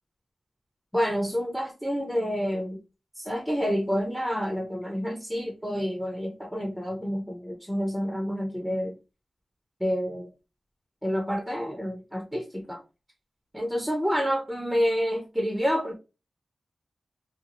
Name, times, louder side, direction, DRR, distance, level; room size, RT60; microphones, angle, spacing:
voice 1, 0.9-2.8 3.2-9.0 9.8-10.3 11.0-12.8 13.5-16.0, equal, ahead, 0.5 m, -28 dB
2.6 x 2.3 x 2.8 m
wide cardioid pair, 110°, 0 cm